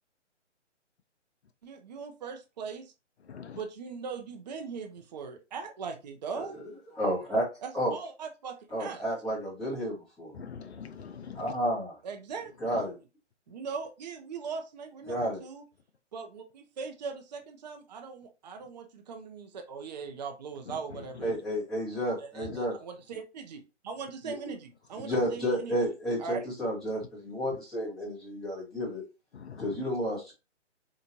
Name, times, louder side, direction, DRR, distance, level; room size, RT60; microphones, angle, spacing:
voice 1, 1.6-2.9 3.6-6.6 7.6-9.1 12.0-12.9 13.5-15.6 16.1-21.3 22.2-25.8 26.2-26.5, right 5 dB, 35° right, 0.6 m, -40 dB
voice 2, 3.3-3.6 10.3-11.5 21.3-21.4 22.5-22.6 29.3-29.7, left 6 dB, 60° left, 0.7 m, -43 dB
voice 3, 7.0-7.5 7.7-7.9 8.7-10.3 11.3-12.0 12.6-13.0 15.1-15.4 21.2-22.8 24.2-24.4 25.0-29.0 29.6-30.3, equal, ahead, 0.9 m, -31 dB
4.5 x 2.4 x 2.7 m
figure-of-eight pair, 135°, 36 cm